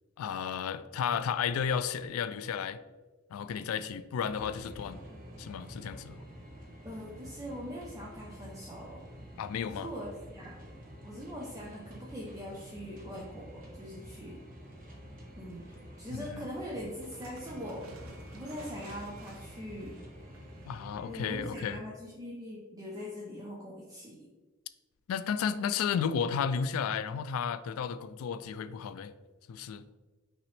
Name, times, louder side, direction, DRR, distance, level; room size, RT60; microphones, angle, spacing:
voice 1, 0.2-2.8 3.3-5.0 5.4-6.2 9.4-9.9 16.1-16.5 20.7-21.8 25.1-29.1 29.5-29.8, left 7 dB, 90° left, 0.3 m, -33 dB
sound 1, 4.2-21.7, equal, 40° right, 1.1 m, -48 dB
voice 2, 6.8-9.1 9.6-10.6 11.0-14.4 15.4-17.9 18.3-20.0 21.1-24.3 25.5-25.8, equal, 15° right, 0.6 m, -42 dB
sound 2, 17.0-21.1, right 2 dB, 90° right, 0.7 m, -53 dB
5.7 x 2.9 x 3.1 m
head